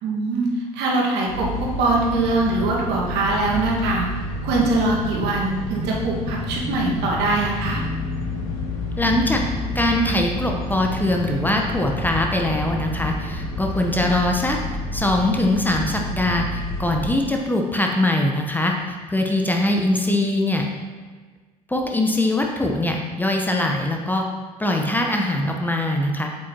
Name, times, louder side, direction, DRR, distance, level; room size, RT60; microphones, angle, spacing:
voice 1, 0.0-4.1 4.4-7.8 14.1-14.2, right 2 dB, 55° right, -2 dB, 1.7 m, -22 dB
sound 1, 1.3-17.1, left 1 dB, 70° left, 2.3 m, -29 dB
voice 2, 9.0-9.4 9.7-14.6 14.9-20.7 21.7-24.2 24.6-26.3, left 1 dB, 10° left, 1 dB, 0.9 m, -22 dB
8.0 x 7.6 x 2.9 m, 1.4 s
figure-of-eight pair, 60°, 20 cm